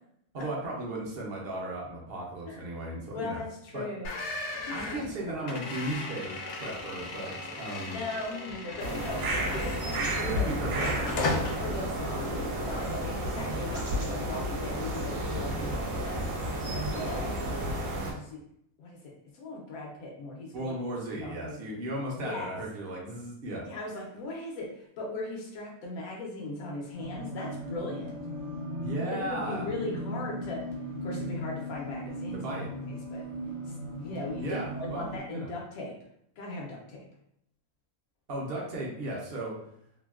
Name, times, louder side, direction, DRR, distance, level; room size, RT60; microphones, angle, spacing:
voice 1, 0.3-3.4 3.7-3.9 4.7-8.0 10.2-11.0 20.5-23.6 28.8-29.7 32.3-32.7 34.4-35.5 38.3-39.6, right 1 dB, 55° right, -3 dB, 0.8 m, -36 dB
voice 2, 3.1-4.1 4.5-4.9 5.2-5.5 7.9-10.5 11.6-16.3 16.9-17.7 18.1-18.4 18.8-20.7 21.1-21.6 22.2-22.5 23.6-28.1 29.2-30.7 31.0-32.6 32.9-33.2 33.7-35.9 36.4-37.1, left 2 dB, 85° left, -1 dB, 1.1 m, -39 dB
sound 1, 4.0-10.3 10.7-11.5, left 2 dB, 65° left, 0.8 m, -36 dB
sound 2, 8.8-18.1, right 1 dB, 70° right, 1.0 m, -31 dB
sound 3, 26.9-35.2, equal, 20° right, 0.5 m, -37 dB
3.0 x 2.5 x 2.3 m, 0.72 s
omnidirectional pair, 1.5 m